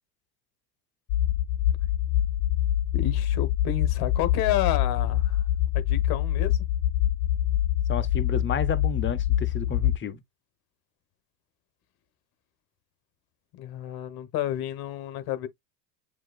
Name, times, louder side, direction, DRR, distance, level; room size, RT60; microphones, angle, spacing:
sound 1, 1.1-10.0, left 12 dB, 80° left, 0.6 m, -25 dB
voice 1, 2.9-5.4 5.7-6.6 13.5-15.5, left 12 dB, 45° left, 1.2 m, -30 dB
voice 2, 7.9-10.2, left 5 dB, 25° left, 0.8 m, -31 dB
7.3 x 2.9 x 2.4 m
supercardioid pair, 115°, 50 cm